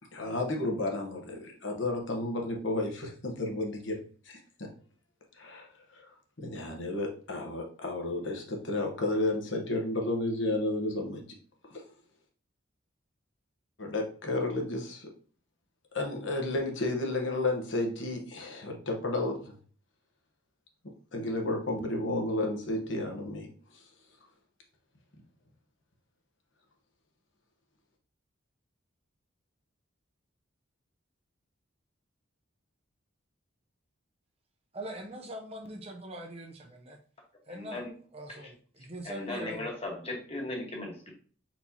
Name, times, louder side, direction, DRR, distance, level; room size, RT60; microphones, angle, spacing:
voice 1, 0.1-4.0 4.2-4.7 5.4-6.1 6.4-11.2 11.7-11.8 13.8-15.1 15.9-19.5 21.1-23.5, left 2 dB, 60° left, 1.0 m, -32 dB
voice 2, 34.7-37.0 37.5-37.8 38.1-39.7, right 1 dB, 30° right, 0.6 m, -42 dB
voice 3, 37.5-37.9 38.3-38.5 39.0-41.1, left 2 dB, 30° left, 1.3 m, -37 dB
4.4 x 4.3 x 2.7 m
head